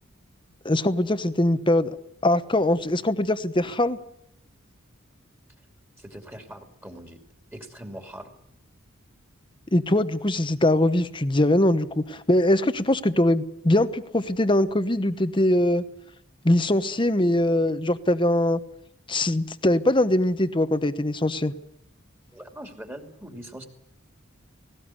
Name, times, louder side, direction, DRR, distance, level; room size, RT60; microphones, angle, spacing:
voice 1, 0.6-2.0 2.2-4.0 9.7-15.8 16.4-18.6 19.1-21.5, left 1 dB, 25° left, 12 dB, 1.0 m, -22 dB
voice 2, 6.0-7.2 7.5-8.3 22.3-23.7, right 1 dB, 10° right, 5 dB, 2.6 m, -41 dB
19.0 x 18.0 x 9.8 m, 0.75 s
head